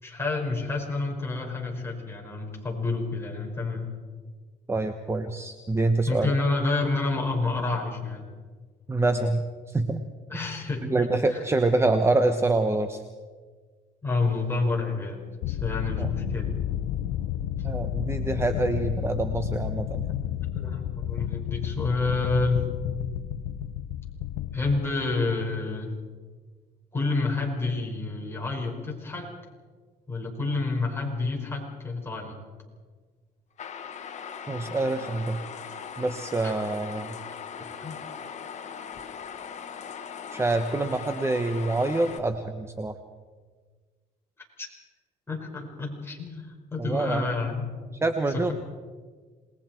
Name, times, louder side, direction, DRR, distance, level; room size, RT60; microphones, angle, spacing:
voice 1, 0.0-3.9 6.1-8.2 10.3-11.4 14.0-16.5 20.5-22.7 24.5-25.9 26.9-29.4 30.1-32.4 36.4-36.5 37.8-38.0 44.6-44.7 45.3-47.7 48.3-48.5, left 3 dB, 15° left, -1 dB, 5.4 m, -29 dB
voice 2, 4.7-6.3 8.9-10.0 10.4-10.5 10.9-13.0 16.0-16.1 17.6-20.1 34.5-35.4 36.0-37.1 40.3-42.9 46.8-47.3 48.0-48.5, right 2 dB, 15° right, 8 dB, 1.1 m, -26 dB
sound 1, 15.4-25.5, left 11 dB, 90° left, 0.8 m, -31 dB
sound 2, 33.6-42.2, left 7 dB, 45° left, 1.6 m, -39 dB
28.0 x 20.5 x 4.5 m, 1.5 s
cardioid pair, 110°, 17 cm